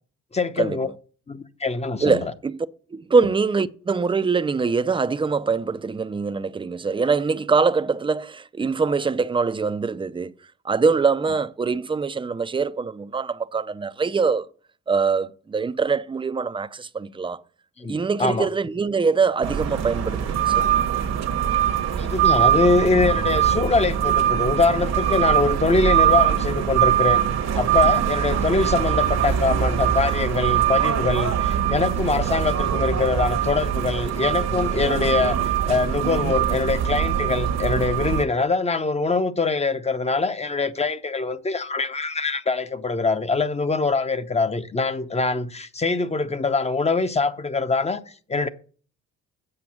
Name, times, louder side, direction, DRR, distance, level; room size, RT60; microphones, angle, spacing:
voice 1, 0.3-0.9 1.3-2.2 17.8-18.5 22.0-27.2 27.5-48.5, left 3 dB, 20° left, 0.7 m, -23 dB
voice 2, 2.0-2.6 2.9-10.3 10.6-14.5 14.9-17.4 17.9-20.6, right 5 dB, 15° right, 0.5 m, -23 dB
sound 1, 19.4-38.2, right 10 dB, 60° right, 1.1 m, -22 dB
7.8 x 5.8 x 7.2 m
cardioid pair, 90°, 30 cm